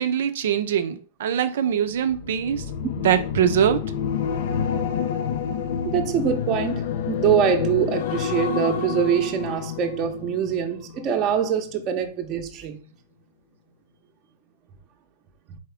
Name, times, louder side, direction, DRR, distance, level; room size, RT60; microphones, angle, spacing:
voice 1, 0.0-2.6 3.0-3.8, right 9 dB, 75° right, 0.5 m, -22 dB
sound 1, 2.0-11.4 11.8-12.1, left 8 dB, 65° left, 0.5 m, -29 dB
voice 2, 5.8-12.8 15.5-15.6, right 8 dB, 35° right, 0.8 m, -24 dB
4.2 x 3.6 x 3.4 m
hypercardioid pair, 130°, 0 cm